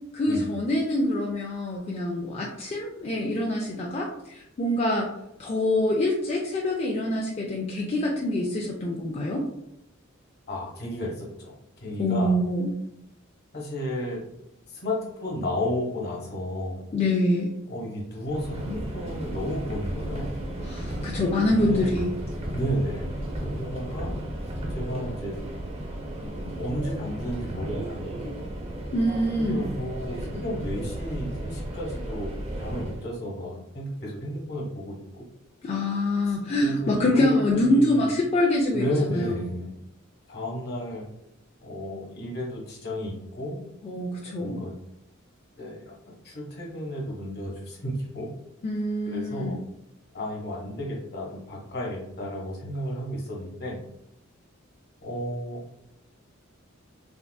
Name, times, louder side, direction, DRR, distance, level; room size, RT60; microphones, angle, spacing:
voice 1, 0.1-5.1 5.4-9.4 12.0-12.8 16.9-17.5 20.7-22.1 28.9-29.7 35.6-39.5 43.8-44.6 48.6-49.6, left 1 dB, 30° left, -2 dB, 0.3 m, -25 dB
voice 2, 10.5-11.5 11.8-12.3 13.5-14.2 14.7-16.8 17.7-20.4 21.6-21.9 22.5-23.1 23.4-24.1 24.7-25.3 26.2-28.5 29.4-32.3 32.6-35.3 36.6-38.1 38.7-39.7 40.3-41.0 41.6-43.6 44.4-44.7 45.6-48.3 49.1-49.6 50.1-53.8 55.0-55.6, equal, 50° left, -3 dB, 1.1 m, -33 dB
Subway metro underground, 18.2-33.1, right 1 dB, 30° right, 0.5 m, -34 dB
3.5 x 2.4 x 2.2 m, 0.82 s
head